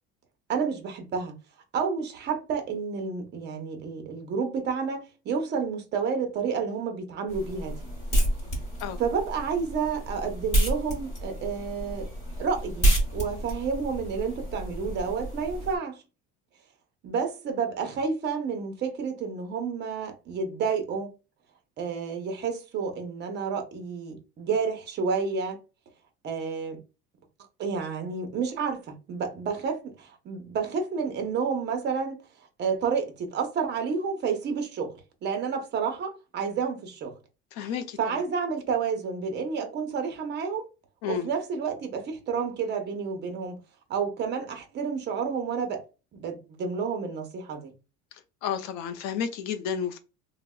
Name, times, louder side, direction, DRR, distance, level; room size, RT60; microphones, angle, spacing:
voice 1, 0.5-1.4 1.7-7.8 9.0-12.1 12.4-16.0 17.0-21.1 21.8-25.6 26.2-26.8 27.6-32.2 32.6-37.2 38.0-40.7 41.1-43.6 43.9-45.8 46.1-47.7, right 5 dB, 35° right, 0.7 m, -30 dB
sound 1, 7.3-15.8, right 1 dB, 25° left, 1.1 m, -29 dB
voice 2, 37.5-38.2 41.0-41.3 48.1-50.0, left 7 dB, 90° left, 0.5 m, -32 dB
4.0 x 2.1 x 2.2 m
cardioid pair, 165°, 30 cm